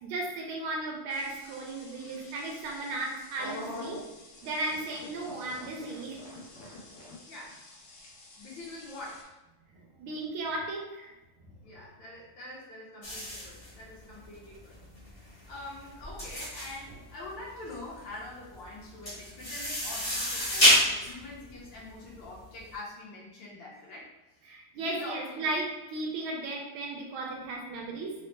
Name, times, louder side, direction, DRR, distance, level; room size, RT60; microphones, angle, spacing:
voice 1, 0.0-4.0 4.4-6.2 9.7-11.1 24.5-28.1, right 2 dB, 75° right, 0 dB, 1.4 m, -35 dB
sound 1, 1.1-9.2, left 2 dB, 85° left, 1.6 m, -47 dB
voice 2, 7.2-7.6 8.4-9.4 11.6-14.8 15.1-25.5, left 2 dB, 65° left, -5 dB, 1.4 m, -45 dB
sound 2, 13.0-22.6, left 1 dB, 35° left, 0.5 m, -29 dB
4.0 x 2.0 x 3.1 m, 1.0 s
omnidirectional pair, 2.4 m